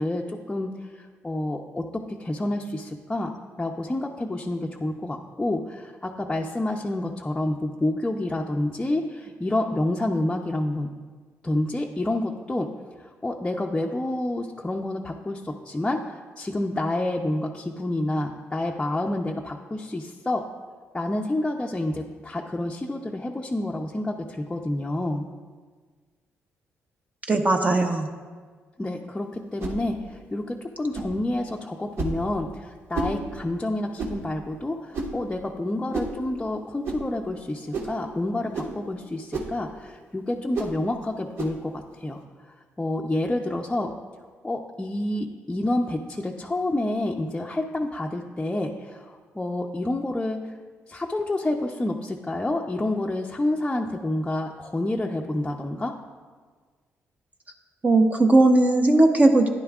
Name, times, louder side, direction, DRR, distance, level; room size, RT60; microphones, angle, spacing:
voice 1, 0.0-3.3 3.6-10.9 11.4-12.7 13.0-20.4 20.9-25.3 28.8-42.2 42.8-43.9 44.4-50.5 50.9-55.9, left 1 dB, 15° left, -1 dB, 0.6 m, -28 dB
voice 2, 27.3-28.1 57.8-59.5, right 2 dB, 30° right, 3 dB, 0.8 m, -18 dB
sound 1, 29.6-29.8 30.9-31.2 32.0-32.2 32.9-33.2 34.0-34.2 34.9-35.2 35.9-36.2 36.8-37.0 37.7-38.0 38.5-38.8 39.3-39.6 40.5-40.8 41.4-41.6, right 3 dB, 65° right, 1.5 m, -30 dB
13.0 x 10.5 x 2.4 m, 1.5 s
cardioid pair, 95°, 5 cm